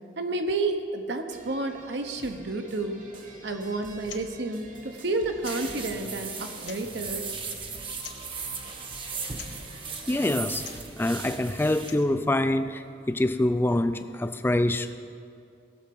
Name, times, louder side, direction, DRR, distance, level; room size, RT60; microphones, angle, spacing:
voice 1, 0.2-3.0 3.4-7.3, right 2 dB, 65° right, 6 dB, 0.9 m, -30 dB
sound 1, 1.3-10.8, right 1 dB, 45° right, 1.2 m, -47 dB
sound 2, 4.0-4.3 4.5-4.6 5.4-5.8 6.5-7.0 8.0-8.3 9.3-9.6 10.5-10.9 11.7-12.1, left 9 dB, 75° left, 0.8 m, -44 dB
sound 3, 5.4-11.9, right 5 dB, 30° right, 0.8 m, -37 dB
voice 2, 10.1-10.6 11.0-15.0, left 1 dB, 10° left, 10 dB, 0.3 m, -25 dB
17.0 x 6.8 x 5.3 m, 2.4 s
head